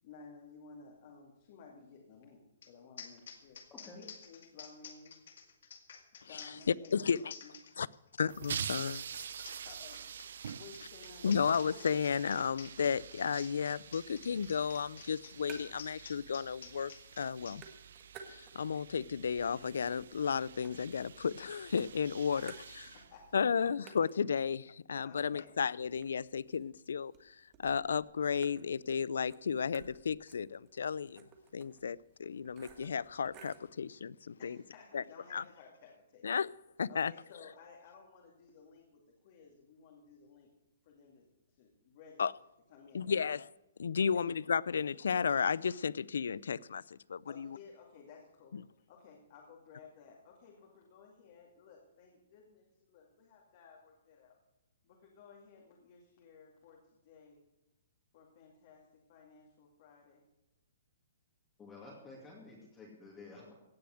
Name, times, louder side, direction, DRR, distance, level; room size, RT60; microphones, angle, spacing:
voice 1, 0.0-3.6 3.9-5.2 6.3-7.9 9.6-10.0 10.5-11.3 11.7-12.0 22.4-22.5 22.9-23.7 25.0-25.5 34.4-36.3 36.9-40.5 40.8-42.2 42.7-43.3 44.0-44.2 47.3-54.4 54.8-57.4 58.1-60.2, left 5 dB, 40° left, 2.4 m, -56 dB
sound 1, 2.6-2.7 3.0-17.6, left 7 dB, 65° left, 2.1 m, -51 dB
voice 2, 3.7-4.0 61.6-63.5, left 3 dB, 15° left, 2.4 m, -51 dB
voice 3, 8.2-9.0 11.2-16.9 17.2-17.6 18.3-22.5 23.3-24.6 24.9-31.2 31.5-34.6 34.9-35.0 35.3-35.4 36.2-36.5 36.8-37.1 42.2-42.3 42.9-43.4 43.8-47.5 48.5-48.6, left 6 dB, 85° left, 0.4 m, -33 dB
sound 2, 8.3-23.7, right 8 dB, 70° right, 0.5 m, -47 dB
sound 3, 15.0-16.0 16.3-17.0 17.2-18.8 19.2-21.4 21.8-23.2 23.5-23.6 23.9-33.7, right 6 dB, 25° right, 1.5 m, -57 dB
17.0 x 6.9 x 7.7 m
hypercardioid pair, 165°, 0 cm